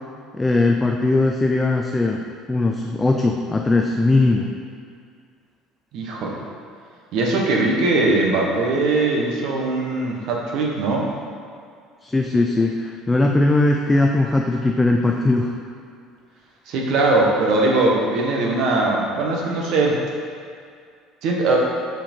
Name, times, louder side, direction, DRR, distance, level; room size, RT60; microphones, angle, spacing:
voice 1, 0.3-2.2 2.5-4.5 12.0-15.5, left 2 dB, 10° left, 1 dB, 0.3 m, -19 dB
voice 2, 5.9-6.4 7.1-11.1 16.7-20.0 21.2-21.6, right 2 dB, 60° right, -1 dB, 1.1 m, -20 dB
5.8 x 4.8 x 4.4 m, 2.2 s
cardioid pair, 150°, 0 cm